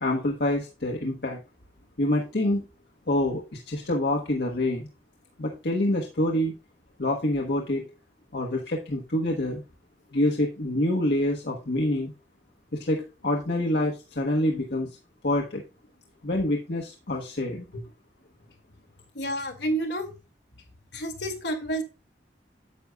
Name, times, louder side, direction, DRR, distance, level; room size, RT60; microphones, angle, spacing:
voice 1, 0.0-1.4 2.0-2.6 3.1-4.9 5.4-6.5 7.0-7.8 8.3-9.6 10.1-12.1 12.7-14.9 15.2-15.6 16.2-17.8, left 1 dB, 70° left, 0 dB, 1.3 m, -26 dB
voice 2, 19.1-20.1 20.9-21.8, right 1 dB, 85° left, 4 dB, 2.2 m, -29 dB
9.8 x 7.9 x 2.3 m, 0.30 s
head